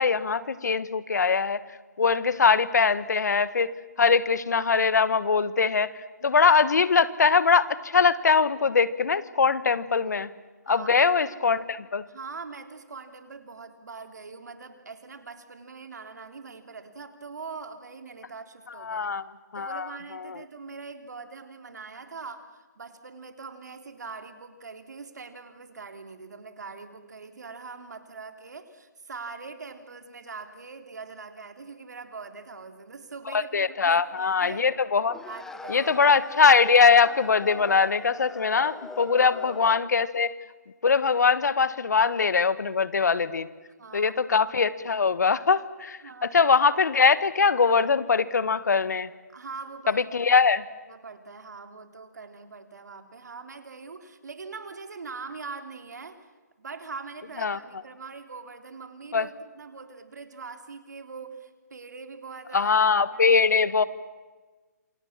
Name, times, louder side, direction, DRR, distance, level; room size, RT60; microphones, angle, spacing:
voice 1, 0.0-1.6 2.0-3.7 4.0-5.9 6.2-10.3 10.7-12.0 18.8-19.2 19.5-19.9 20.3-20.4 33.3-35.1 35.7-40.3 40.8-43.5 43.9-49.1 49.9-50.6 57.4-57.6 59.1-59.3 62.5-63.8, left 5 dB, 70° left, 17 dB, 1.4 m, -22 dB
voice 2, 10.6-11.3 12.1-19.1 19.6-34.6 35.2-36.0 39.1-39.5 43.8-44.1 46.0-46.4 49.3-50.3 50.9-56.3 56.6-63.6, right 4 dB, 75° right, 8 dB, 3.4 m, -42 dB
sound 1, 35.0-39.9, left 4 dB, 5° left, 0.8 m, -41 dB
27.5 x 24.0 x 7.4 m, 1.3 s
hypercardioid pair, 150°, 9 cm